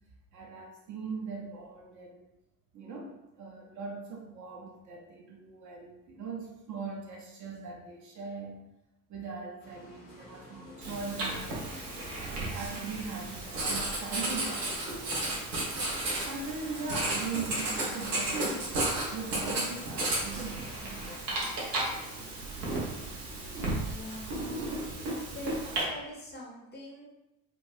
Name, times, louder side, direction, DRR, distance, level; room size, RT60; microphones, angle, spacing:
voice 1, 0.3-2.3 2.7-8.6 9.1-15.4 16.3-18.8 19.1-21.7, right 4 dB, 40° right, 0 dB, 0.6 m, -40 dB
sound 1, 9.6-21.2, left 2 dB, 90° left, 0.6 m, -50 dB
Writing, 10.8-25.8, right 2 dB, 75° right, 0.8 m, -33 dB
voice 2, 23.8-24.5 25.3-27.0, left 1 dB, 20° left, -2 dB, 0.6 m, -43 dB
2.9 x 2.2 x 2.6 m, 0.92 s
figure-of-eight pair, 50°, 47 cm